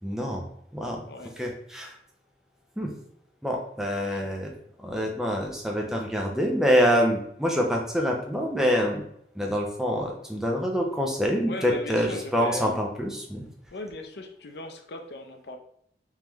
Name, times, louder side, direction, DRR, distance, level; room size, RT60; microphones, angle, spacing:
voice 1, 0.0-0.5 0.7-1.0 1.4-2.0 2.8-2.9 3.4-4.5 4.8-9.0 9.4-13.5, equal, 5° right, 0 dB, 0.6 m, -26 dB
voice 2, 11.5-12.8 13.7-15.6, left 2 dB, 65° left, 5 dB, 0.5 m, -37 dB
3.6 x 3.2 x 3.0 m, 0.71 s
head